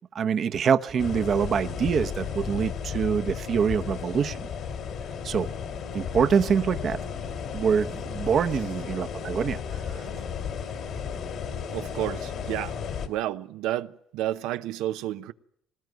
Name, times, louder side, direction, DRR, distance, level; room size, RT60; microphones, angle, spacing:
voice 1, 0.1-4.4 5.2-5.5 5.9-7.0 7.5-10.1, right 7 dB, 45° right, 0.9 m, -25 dB
sound 1, 1.0-13.1, left 7 dB, 55° left, 2.7 m, -34 dB
voice 2, 11.7-12.8 13.1-15.3, right 13 dB, 90° right, 0.8 m, -31 dB
20.0 x 19.0 x 9.3 m
cardioid pair, 130°, 0 cm